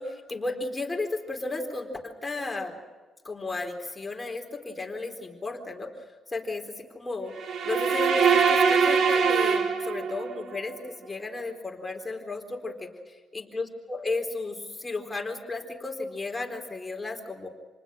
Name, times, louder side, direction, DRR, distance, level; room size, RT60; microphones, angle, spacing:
voice 1, 0.0-2.7 3.2-5.9 6.3-7.3 7.6-12.9 13.3-17.5, left 3 dB, 20° left, 2 dB, 4.0 m, -34 dB
sound 1, 7.4-10.4, right 6 dB, 60° right, 3.4 m, -23 dB
28.0 x 20.0 x 6.4 m, 1.4 s
cardioid pair, 90°, 0 cm